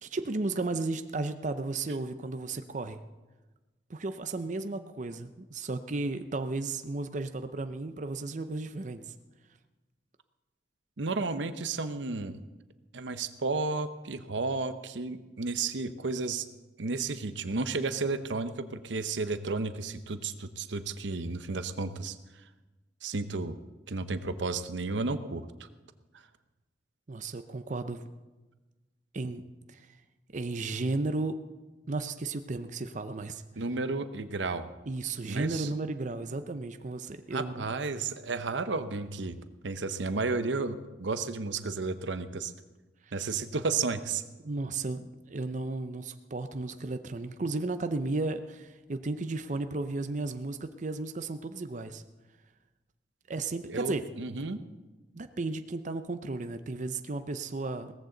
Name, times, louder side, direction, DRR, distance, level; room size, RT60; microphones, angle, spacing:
voice 1, 0.0-3.0 3.9-9.1 27.1-28.0 29.1-29.4 29.7-29.9 30.3-31.4 31.9-33.4 34.9-37.7 43.0-43.2 44.4-52.0 53.3-54.0 55.1-57.9, right 3 dB, 40° right, 9 dB, 0.6 m, -34 dB
voice 2, 11.0-12.4 12.9-16.5 16.8-22.2 23.0-23.6 23.9-25.4 33.6-34.7 35.2-35.7 37.3-39.4 39.6-42.5 43.1-44.2 53.7-54.6, right 3 dB, 80° right, 11 dB, 0.8 m, -32 dB
17.5 x 14.5 x 3.9 m, 1.2 s
head